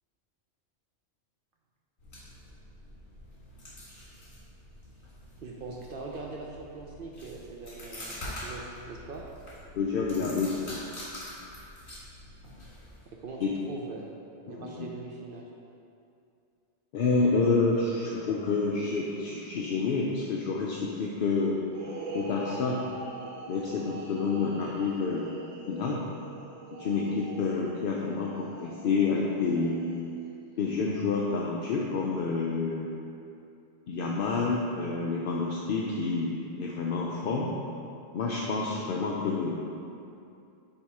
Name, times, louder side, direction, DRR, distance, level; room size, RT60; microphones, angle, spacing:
sound 1, 2.0-13.1, left 1 dB, 45° left, 1.7 m, -45 dB
voice 1, 5.4-9.2 13.1-14.1 14.5-15.5, right 3 dB, 60° right, -2 dB, 0.6 m, -41 dB
voice 2, 9.7-10.5 13.4-13.5 14.5-14.7 16.9-21.6 22.1-22.8 23.5-25.3 25.7-26.0 26.8-29.9 30.6-32.9 33.9-37.5 38.1-39.6, left 4 dB, 60° left, -3 dB, 0.6 m, -28 dB
sound 2, 21.7-30.3, right 2 dB, 80° right, 1.2 m, -43 dB
7.1 x 2.9 x 4.7 m, 2.6 s
omnidirectional pair, 1.3 m